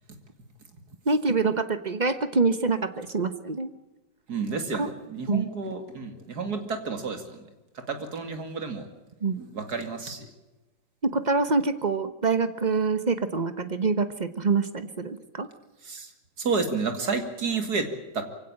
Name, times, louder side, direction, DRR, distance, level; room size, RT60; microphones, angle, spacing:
voice 1, 1.1-3.7 4.8-4.9 5.3-5.5 9.2-9.4 11.0-15.5, right 4 dB, 35° right, 11 dB, 0.7 m, -25 dB
voice 2, 4.3-7.5 7.9-8.9 9.3-10.3 15.8-16.1 16.4-17.9 18.1-18.2, right 4 dB, 50° right, 6 dB, 2.9 m, -30 dB
23.5 x 17.0 x 8.9 m, 1.1 s
omnidirectional pair, 2.2 m